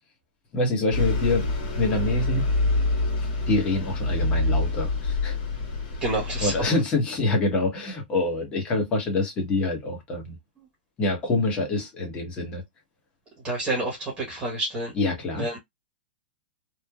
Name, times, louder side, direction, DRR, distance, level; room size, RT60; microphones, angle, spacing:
voice 1, 0.5-1.5 1.8-2.5 3.5-5.4 6.4-10.4 11.0-12.6 14.9-15.5, left 2 dB, 20° left, 1.0 m, -26 dB
Bus, 0.9-6.7, left 2 dB, 50° left, 1.6 m, -26 dB
voice 2, 6.0-6.5 13.4-14.9 15.3-15.6, right 2 dB, 15° right, 1.0 m, -28 dB
3.1 x 2.1 x 2.3 m
supercardioid pair, 165°, 6 cm